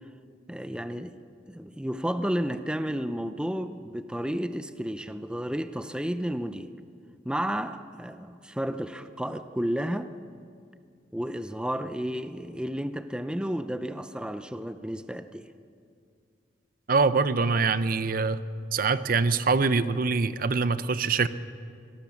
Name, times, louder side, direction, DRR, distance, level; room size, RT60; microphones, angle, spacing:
voice 1, 0.5-1.2 1.5-6.7 7.2-10.2 11.1-15.4, equal, 5° right, 10 dB, 0.6 m, -32 dB
voice 2, 16.9-18.4 18.7-21.3, right 4 dB, 50° right, 13 dB, 0.7 m, -24 dB
23.5 x 18.5 x 7.1 m, 2.3 s
head